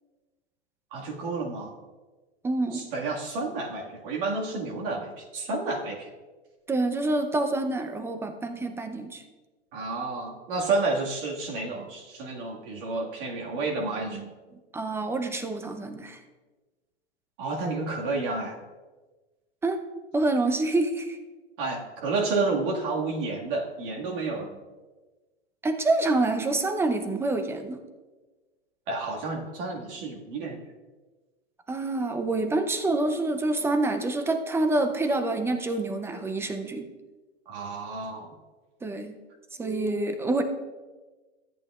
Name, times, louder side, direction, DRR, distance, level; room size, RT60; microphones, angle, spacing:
voice 1, 0.9-1.7 2.7-6.1 9.7-14.3 17.4-18.6 21.6-24.6 28.9-30.6 37.5-38.4, right 3 dB, 55° right, -1 dB, 1.9 m, -30 dB
voice 2, 2.4-2.9 6.7-9.2 14.7-16.2 19.6-19.8 20.1-21.2 25.6-27.8 31.7-36.9 38.8-39.2 39.6-40.4, right 2 dB, 10° right, 7 dB, 0.5 m, -27 dB
13.5 x 8.6 x 2.4 m, 1.2 s
hypercardioid pair, 125°, 32 cm